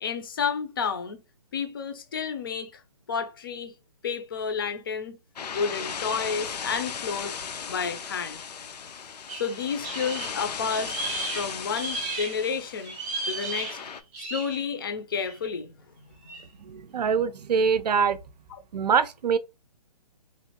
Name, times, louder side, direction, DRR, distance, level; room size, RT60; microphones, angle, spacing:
voice 1, 0.0-1.2 1.5-2.8 3.1-3.7 4.0-5.2 5.5-7.3 7.7-8.4 9.3-10.9 11.3-12.9 13.3-13.8 14.2-15.7 16.0-16.1, left 6 dB, 35° left, 0.5 m, -30 dB
sound 1, 5.4-14.0, left 7 dB, 85° left, 0.5 m, -37 dB
sound 2, 9.3-12.5 12.8-14.7 15.1-15.5 16.2-16.4, right 3 dB, 10° right, 0.5 m, -35 dB
voice 2, 16.7-18.2 18.7-19.4, right 6 dB, 80° right, 0.5 m, -24 dB
3.1 x 2.5 x 2.8 m
hypercardioid pair, 165°, 20 cm